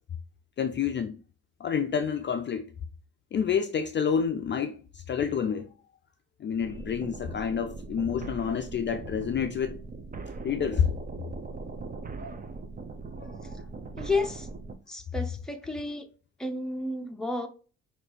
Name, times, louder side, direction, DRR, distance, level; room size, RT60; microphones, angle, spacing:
voice 1, 0.6-1.2 1.6-2.7 3.3-5.7 6.4-9.8 10.4-10.9 13.3-13.6, left 7 dB, 40° left, 0.4 m, -28 dB
sound 1, 6.6-14.8, right 3 dB, 30° right, 0.6 m, -40 dB
voice 2, 14.0-14.5 14.9-16.1 16.4-17.5, left 2 dB, ahead, 0.8 m, -31 dB
5.6 x 2.7 x 3.3 m
cardioid pair, 90°, 30 cm